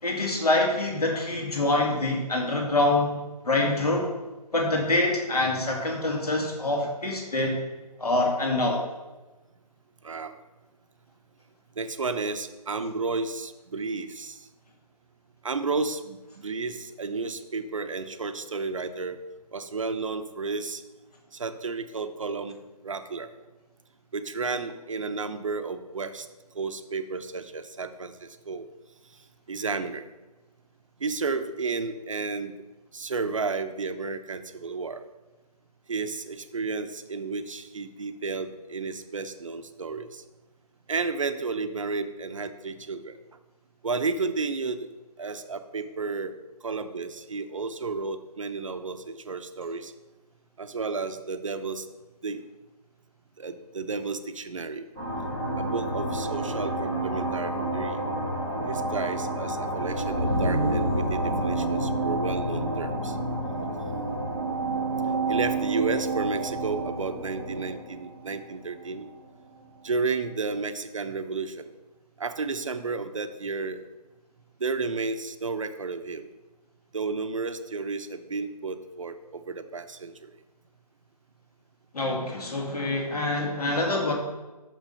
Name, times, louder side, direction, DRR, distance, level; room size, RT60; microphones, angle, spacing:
voice 1, 0.0-3.1 3.4-4.1 4.5-7.6 8.0-8.8 81.9-84.1, left 2 dB, 70° left, 0 dB, 2.4 m, -25 dB
voice 2, 10.0-10.4 11.8-14.4 15.4-19.2 19.5-20.8 21.3-22.6 22.8-23.3 24.1-26.3 26.5-28.1 28.5-28.6 29.5-30.0 31.0-32.6 32.9-35.0 35.9-40.2 40.9-43.2 43.8-44.9 45.2-46.3 46.6-49.9 50.6-51.8 52.2-52.4 53.4-54.9 55.6-58.0 58.7-63.2 65.3-69.1 69.8-71.7 72.2-73.8 74.6-76.3 76.9-80.1, right 4 dB, 50° right, 9 dB, 0.7 m, -32 dB
sound 1, 55.0-69.1, right 2 dB, ahead, 0.5 m, -29 dB
6.2 x 6.1 x 5.6 m, 1.2 s
figure-of-eight pair, 165°, 21 cm